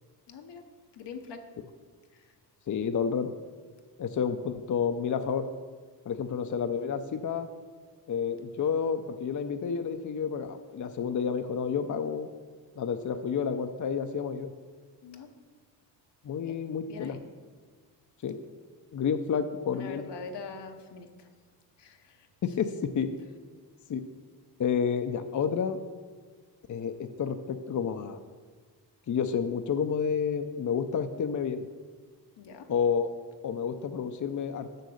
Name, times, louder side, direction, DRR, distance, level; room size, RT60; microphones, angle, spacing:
voice 1, 0.3-0.6 0.9-1.4 2.1-2.3 15.0-15.3 16.4-17.2 19.7-21.3 21.8-22.3 32.4-32.7, left 5 dB, 80° left, 5 dB, 1.0 m, -44 dB
voice 2, 2.7-3.3 4.0-5.5 6.1-7.5 8.1-12.3 12.8-14.5 16.2-17.2 18.2-18.4 18.9-20.0 22.4-23.1 23.9-24.0 24.6-25.8 26.7-28.2 29.1-31.6 32.7-33.1 33.4-34.7, left 6 dB, 45° left, 8 dB, 0.6 m, -30 dB
6.6 x 6.5 x 6.4 m, 1.5 s
cardioid pair, 65°, 41 cm